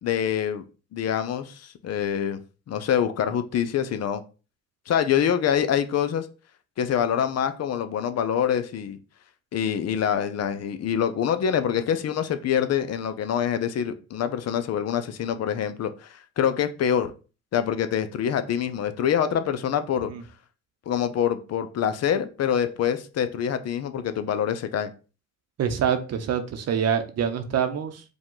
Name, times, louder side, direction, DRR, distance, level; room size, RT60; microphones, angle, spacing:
voice 1, 0.0-0.6 0.9-2.4 2.7-4.2 4.9-6.3 6.8-9.0 9.5-17.1 17.5-20.1 20.9-24.9, left 8 dB, 55° left, 10 dB, 0.6 m, -25 dB
voice 2, 25.6-28.0, right 8 dB, 55° right, 8 dB, 0.8 m, -25 dB
5.0 x 2.3 x 3.8 m, 0.34 s
cardioid pair, 90°, 30 cm